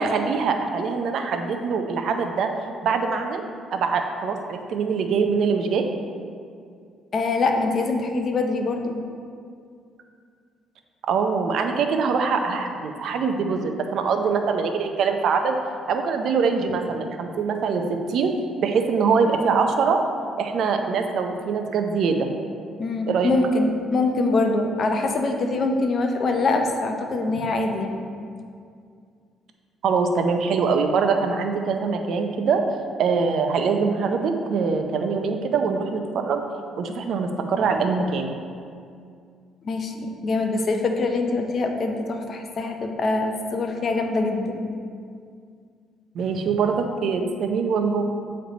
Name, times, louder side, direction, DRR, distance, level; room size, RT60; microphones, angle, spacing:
voice 1, 0.0-2.5 2.8-3.4 3.7-5.9 11.1-15.6 15.9-18.3 18.6-20.0 20.4-22.3 23.1-23.3 29.8-32.6 33.0-36.4 36.8-38.4 46.1-48.0, right 5 dB, 65° right, 5 dB, 0.5 m, -23 dB
voice 2, 7.1-9.0 22.8-28.0 39.6-44.6, left 3 dB, 45° left, 4 dB, 0.6 m, -24 dB
7.9 x 3.3 x 3.9 m, 2.3 s
cardioid pair, 105°, 0 cm